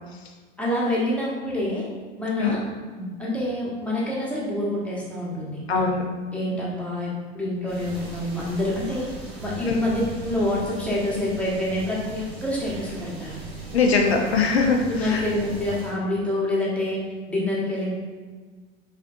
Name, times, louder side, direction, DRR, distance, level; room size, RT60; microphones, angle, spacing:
voice 1, 0.6-1.8 2.2-2.6 2.9-6.0 6.3-9.1 9.4-13.4 14.9-17.0 17.3-17.9, left 1 dB, 5° left, -6 dB, 1.3 m, -27 dB
voice 2, 5.7-6.0 9.7-9.8 13.7-15.2, left 4 dB, 85° left, 1 dB, 0.6 m, -21 dB
sound 1, 7.7-15.9, right 3 dB, 85° right, 1.0 m, -38 dB
5.0 x 3.4 x 2.5 m, 1.4 s
figure-of-eight pair, 85°, 31 cm